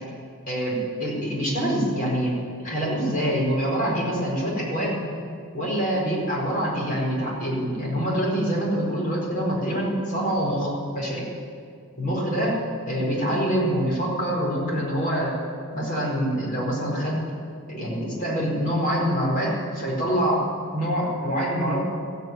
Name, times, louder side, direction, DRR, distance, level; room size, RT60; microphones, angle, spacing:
voice 1, 0.5-5.0 5.5-11.2 12.0-12.5 12.8-15.4 15.7-17.2 17.7-20.5 20.7-21.8, equal, 40° left, -3 dB, 4.6 m, -25 dB
15.0 x 9.2 x 9.0 m, 2.2 s
head